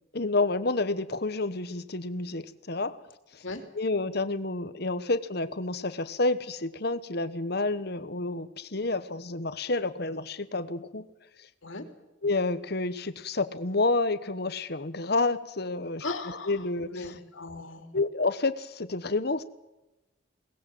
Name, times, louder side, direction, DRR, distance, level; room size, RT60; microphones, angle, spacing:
voice 1, 0.1-3.0 3.3-3.4 3.7-11.1 11.4-11.5 12.2-16.0 16.5-17.1 17.9-19.4, left 3 dB, 55° left, 13 dB, 1.2 m, -29 dB
voice 2, 16.0-16.6 16.9-17.9, left 2 dB, 85° left, 6 dB, 3.1 m, -37 dB
22.5 x 19.5 x 7.8 m, 0.97 s
head